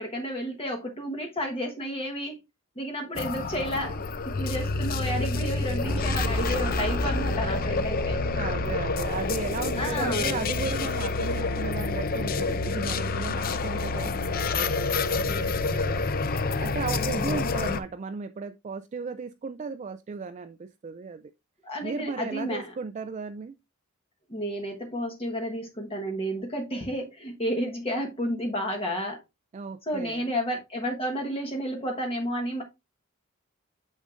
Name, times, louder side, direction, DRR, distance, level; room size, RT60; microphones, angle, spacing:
voice 1, 0.0-2.4 2.8-4.0 4.2-8.2 9.8-10.4 16.9-17.4 21.6-22.7 24.3-29.2 29.9-32.6, equal, 25° left, 1.2 m, -31 dB
sound 1, 3.1-17.8, left 3 dB, 45° left, 0.6 m, -28 dB
sound 2, 5.8-10.9, equal, 20° right, 0.8 m, -34 dB
voice 2, 8.3-16.0 16.6-21.3 21.8-23.6 29.5-30.3, right 5 dB, 35° right, 0.3 m, -35 dB
9.0 x 6.3 x 2.5 m
head